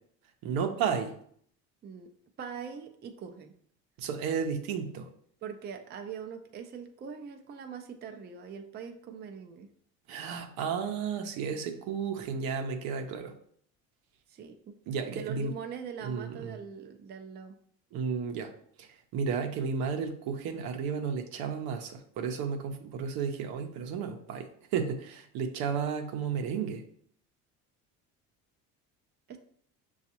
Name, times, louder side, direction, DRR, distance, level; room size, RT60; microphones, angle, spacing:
voice 1, 0.4-1.1 4.0-5.1 10.1-13.3 14.9-15.5 16.0-16.6 17.9-18.5 18.8-26.8, right 6 dB, 70° right, 5 dB, 0.7 m, -33 dB
voice 2, 2.4-3.5 5.4-9.7 14.3-14.8 15.1-17.6 29.3-29.4, right 7 dB, 30° right, 5 dB, 0.4 m, -42 dB
5.8 x 2.4 x 2.8 m, 0.64 s
supercardioid pair, 95°, 37 cm